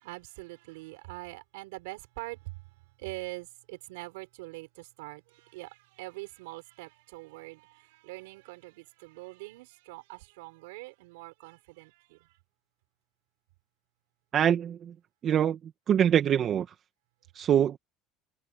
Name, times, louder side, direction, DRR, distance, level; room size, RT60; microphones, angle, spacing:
voice 1, 0.0-12.4, right 23 dB, 85° right, 6.0 m, -44 dB
voice 2, 14.3-14.9 15.2-16.7 17.3-17.8, right 9 dB, 45° right, 1.7 m, -24 dB
supercardioid pair, 90°, 0 cm